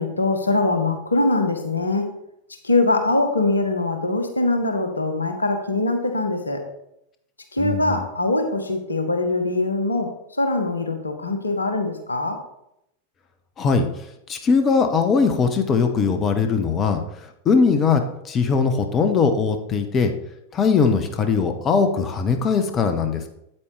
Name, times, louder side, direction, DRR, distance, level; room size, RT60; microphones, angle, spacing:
voice 1, 0.0-2.1 2.6-6.6 7.5-12.4, left 2 dB, 80° left, 6 dB, 1.2 m, -22 dB
voice 2, 7.6-8.0 13.6-13.9 14.3-20.1 20.5-23.3, left 5 dB, 25° left, 6 dB, 0.9 m, -20 dB
8.6 x 8.6 x 3.3 m, 0.81 s
figure-of-eight pair, 90°, 0 cm